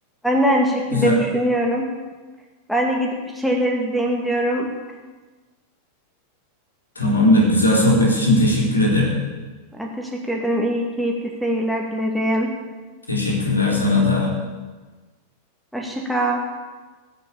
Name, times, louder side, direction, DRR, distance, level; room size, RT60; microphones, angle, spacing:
voice 1, 0.2-1.9 2.7-4.7 9.7-12.5 15.7-16.4, equal, ahead, 1 dB, 2.5 m, -22 dB
voice 2, 7.0-9.2 13.1-14.3, left 1 dB, 80° left, -2 dB, 4.1 m, -18 dB
20.0 x 6.7 x 8.7 m, 1.3 s
figure-of-eight pair, 90°, 0 cm